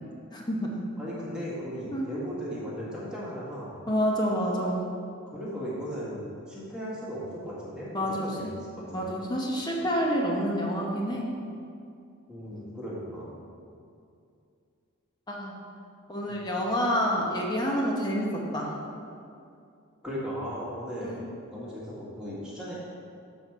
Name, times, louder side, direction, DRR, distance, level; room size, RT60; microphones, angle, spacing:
voice 1, 0.3-0.9 1.9-2.1 3.9-4.8 7.9-8.3 8.9-11.2 12.5-12.7 15.3-15.6 16.1-18.7 21.0-21.3, equal, 20° left, -2 dB, 0.8 m, -28 dB
voice 2, 1.0-3.8 5.3-9.1 12.3-13.4 16.3-16.4 20.0-21.2 21.5-22.7, equal, 5° right, -8 dB, 1.6 m, -37 dB
7.2 x 4.3 x 6.0 m, 2.5 s
head